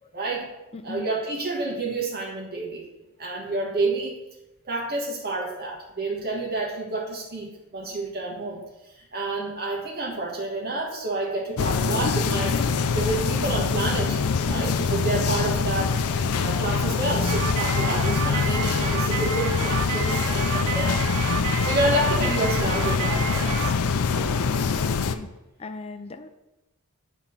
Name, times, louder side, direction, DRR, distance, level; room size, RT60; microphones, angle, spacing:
voice 1, 0.1-0.5 0.8-2.9 3.2-4.1 4.6-8.6 9.0-12.6 12.9-14.2 14.4-16.0 16.4-21.0 21.6-23.7 24.2-24.4 24.9-25.0, right 2 dB, 45° right, -2 dB, 1.5 m, -29 dB
voice 2, 0.7-1.1 14.5-14.9 24.5-25.3 25.6-26.3, left 3 dB, 25° left, 8 dB, 0.5 m, -38 dB
sound 1, 11.6-25.1, left 5 dB, 80° left, 0.5 m, -24 dB
sound 2, 17.3-23.7, right 7 dB, 70° right, 0.4 m, -31 dB
8.7 x 3.6 x 5.7 m, 0.99 s
head